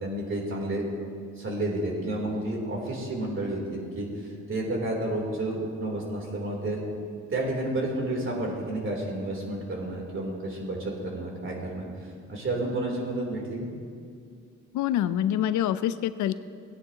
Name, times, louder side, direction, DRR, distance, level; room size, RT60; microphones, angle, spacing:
voice 1, 0.0-0.8 1.4-6.8 7.3-11.9 12.3-13.7, right 1 dB, 40° right, -1 dB, 3.4 m, -31 dB
voice 2, 14.7-16.3, left 11 dB, 75° left, 13 dB, 0.5 m, -26 dB
18.0 x 9.7 x 2.9 m, 2.2 s
cardioid pair, 90°, 30 cm